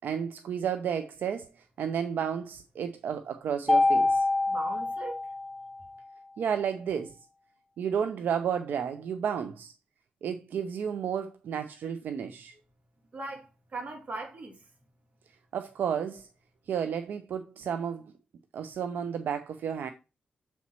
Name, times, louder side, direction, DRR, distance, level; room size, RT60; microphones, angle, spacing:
voice 1, 0.0-1.5 1.8-4.3 6.4-7.2 7.8-9.7 10.2-12.5 15.5-16.3 16.7-18.1 18.5-19.9, right 8 dB, 80° right, 0.5 m, -32 dB
Mallet percussion, 3.7-5.9, left 2 dB, 10° left, 0.9 m, -26 dB
voice 2, 4.5-5.1 13.1-14.5, right 2 dB, 50° right, 2.6 m, -39 dB
7.0 x 4.3 x 4.4 m
cardioid pair, 75°, 3 cm